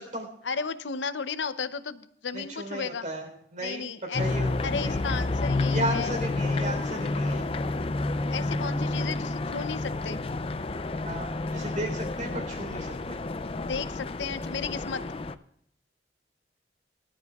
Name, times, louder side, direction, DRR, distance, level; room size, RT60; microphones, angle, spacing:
voice 1, 0.4-3.1 3.6-4.3 4.6-6.2 8.3-10.2 13.7-15.0, left 5 dB, 75° left, 12 dB, 0.7 m, -34 dB
voice 2, 2.3-4.5 4.8-5.0 5.7-7.5 11.1-13.2, right 1 dB, 40° right, 4 dB, 3.8 m, -35 dB
sound 1, 4.1-15.4, left 2 dB, 30° left, 0.5 m, -30 dB
22.5 x 12.5 x 2.4 m, 0.71 s
head